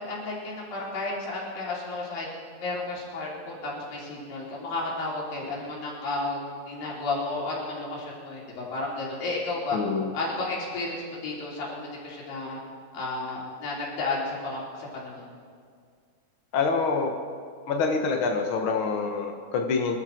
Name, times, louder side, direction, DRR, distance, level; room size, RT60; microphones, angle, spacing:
voice 1, 0.0-2.3 2.6-9.8 10.1-12.6 12.9-15.3, left 2 dB, 75° left, -5 dB, 5.2 m, -32 dB
voice 2, 9.7-10.1 16.5-17.1 17.7-20.0, left 4 dB, 90° left, 3 dB, 1.1 m, -26 dB
24.5 x 12.5 x 4.5 m, 2.1 s
omnidirectional pair, 4.1 m